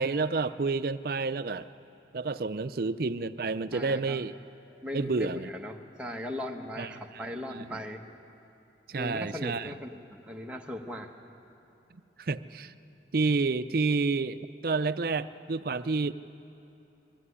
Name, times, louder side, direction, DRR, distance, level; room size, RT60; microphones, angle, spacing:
voice 1, 0.0-1.7 2.1-4.3 4.9-5.5 6.8-6.9 7.5-7.6 8.9-9.7 12.2-12.7 13.1-14.4 14.6-16.1, right 4 dB, 55° right, 13 dB, 0.5 m, -29 dB
voice 2, 3.7-4.2 4.8-8.0 8.9-11.1, left 1 dB, 5° right, 0 dB, 1.1 m, -38 dB
22.0 x 14.0 x 9.7 m, 2.8 s
head